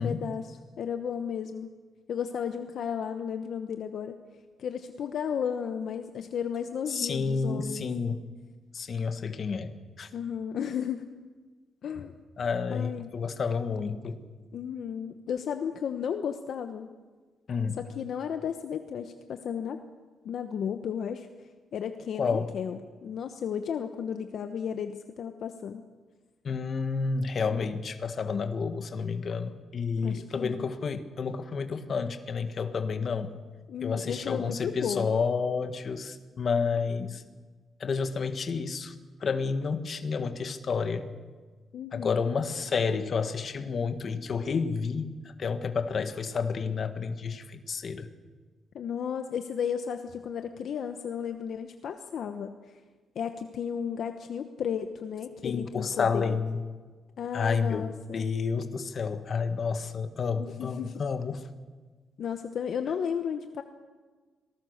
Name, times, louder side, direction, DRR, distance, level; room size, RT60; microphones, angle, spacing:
voice 1, 0.0-1.7 2.1-4.2 4.6-7.9 10.1-11.0 11.8-12.2 12.7-13.1 14.5-16.9 17.8-19.8 20.2-21.3 21.7-25.8 30.0-30.7 33.7-35.2 41.7-42.3 48.7-52.7 53.1-56.4 57.2-58.3 60.4-61.0 62.2-63.6, left 7 dB, 55° left, 7 dB, 1.0 m, -34 dB
voice 2, 6.9-8.3 8.7-10.1 12.0-12.1 12.4-14.2 17.5-17.8 22.2-22.5 26.4-33.4 33.8-37.2 37.8-38.9 39.2-41.1 41.9-45.1 45.4-48.1 55.4-56.6 57.3-61.5, left 5 dB, 40° left, 8 dB, 1.5 m, -30 dB
26.0 x 19.5 x 6.6 m, 1.4 s
cardioid pair, 150°, 0 cm